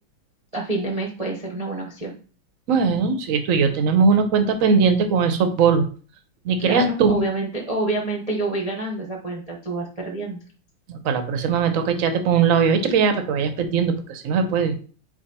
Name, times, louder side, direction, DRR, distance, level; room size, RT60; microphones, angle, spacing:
voice 1, 0.5-2.2 6.6-10.4, right 2 dB, 35° right, -2 dB, 0.6 m, -27 dB
voice 2, 2.7-5.8 6.4-7.2 10.9-14.8, right 5 dB, 65° right, 8 dB, 0.8 m, -20 dB
4.9 x 4.6 x 4.2 m, 0.40 s
omnidirectional pair, 2.3 m